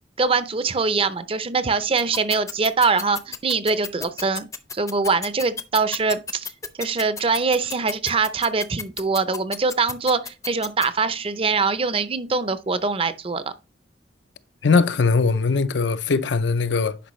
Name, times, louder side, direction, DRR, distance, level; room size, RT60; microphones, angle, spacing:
voice 1, 0.2-4.5 4.7-6.5 6.8-13.5, right 4 dB, 30° right, 0.5 m, -23 dB
sound 1, 2.0-10.9, left 5 dB, 20° left, 0.6 m, -31 dB
voice 2, 14.6-17.0, left 4 dB, 75° left, 0.6 m, -20 dB
10.0 x 5.3 x 3.1 m
head